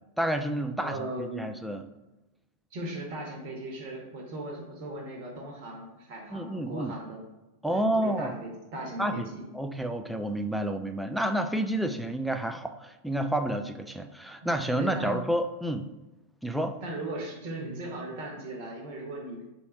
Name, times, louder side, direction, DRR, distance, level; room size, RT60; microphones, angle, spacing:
voice 1, 0.2-1.9 6.3-6.9 7.6-8.3 9.0-9.3 9.5-15.9 16.4-16.8, right 1 dB, ahead, 6 dB, 0.4 m, -29 dB
voice 2, 0.8-1.5 2.7-7.2 7.7-9.4 14.4-15.1 16.8-19.4, right 1 dB, 45° right, 0 dB, 1.4 m, -38 dB
4.2 x 2.8 x 4.4 m, 1.0 s
figure-of-eight pair, 90°, 0 cm